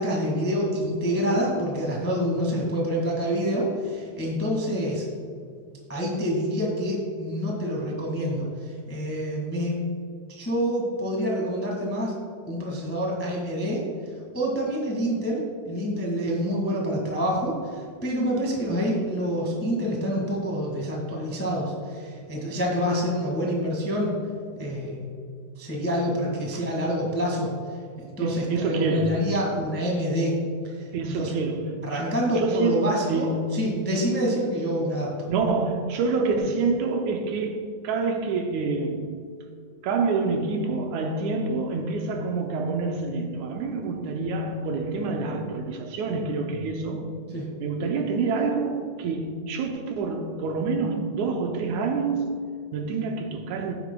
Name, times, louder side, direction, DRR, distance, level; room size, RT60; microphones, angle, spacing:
voice 1, 0.0-5.0 5.9-9.8 10.3-12.1 12.5-13.8 14.3-24.2 24.5-25.0 25.6-27.5 28.0-30.3 30.6-31.3 31.8-35.1 47.3-47.4, equal, 10° left, 0.7 m, -27 dB
voice 2, 28.2-29.4 30.9-33.8 35.3-39.2 39.8-47.1 47.6-53.7, right 3 dB, 80° right, 1.9 m, -27 dB
15.0 x 8.2 x 2.3 m
omnidirectional pair, 3.6 m